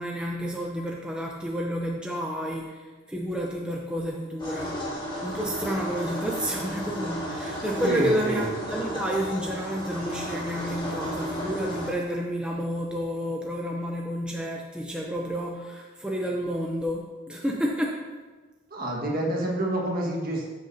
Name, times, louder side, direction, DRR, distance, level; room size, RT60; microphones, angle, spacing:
voice 1, 0.0-4.9 5.2-18.0, equal, 5° right, -2 dB, 0.6 m, -30 dB
sound 1, 4.4-11.9, equal, 25° left, 1.8 m, -33 dB
voice 2, 7.8-8.5 18.7-20.5, right 1 dB, 45° right, -2 dB, 1.7 m, -27 dB
12.5 x 6.5 x 2.8 m, 1.3 s
head